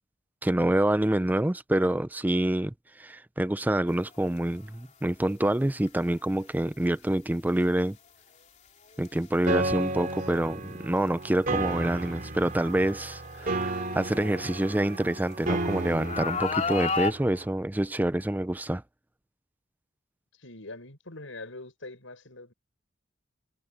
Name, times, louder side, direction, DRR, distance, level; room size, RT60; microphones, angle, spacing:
voice 1, 0.4-8.0 9.0-18.8, right 1 dB, 10° right, 0.4 m, -27 dB
sound 1, 4.2-4.5 5.9-6.0 9.0-9.2 10.1-10.2 11.2-11.3 12.0-12.1 13.4-15.2 16.0-17.1, left 4 dB, 35° left, 3.1 m, -31 dB
Piano, 9.5-17.5, right 2 dB, 45° right, 2.7 m, -33 dB
voice 2, 20.3-22.5, left 2 dB, 75° left, 6.6 m, -43 dB
head